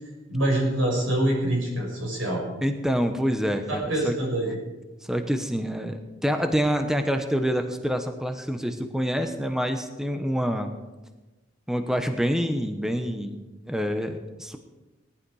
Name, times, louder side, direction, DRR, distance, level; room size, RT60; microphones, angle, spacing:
voice 1, 0.3-2.4 3.7-4.6, right 1 dB, 90° right, -1 dB, 6.5 m, -25 dB
voice 2, 2.6-4.2 5.1-10.7 11.7-13.4 13.6-14.6, equal, 5° right, 6 dB, 0.9 m, -26 dB
18.5 x 11.5 x 4.8 m, 1.1 s
head